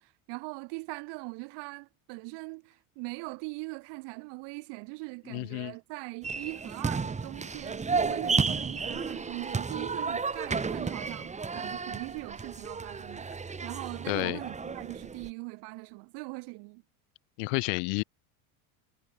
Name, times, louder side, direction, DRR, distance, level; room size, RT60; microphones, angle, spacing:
voice 1, 0.0-13.3 13.6-16.8, right 30 dB, 70° right, 6.0 m, -41 dB
voice 2, 5.3-5.7 14.1-14.4 17.4-18.0, left 40 dB or more, 70° left, 2.4 m, -30 dB
sound 1, 6.2-15.3, right 4 dB, 15° right, 1.9 m, -33 dB
supercardioid pair, 115°, 43 cm